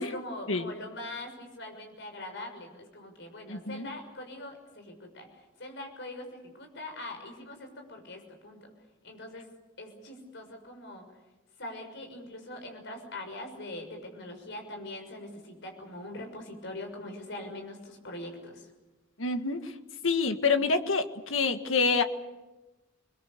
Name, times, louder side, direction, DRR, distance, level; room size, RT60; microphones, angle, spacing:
voice 1, 0.0-8.7 9.0-9.5 9.8-11.0 11.6-18.7, left 1 dB, 65° left, 5 dB, 6.4 m, -42 dB
voice 2, 3.5-3.9 19.2-19.7 20.0-22.0, left 4 dB, 85° left, 8 dB, 1.8 m, -27 dB
29.5 x 22.0 x 6.8 m, 1.1 s
head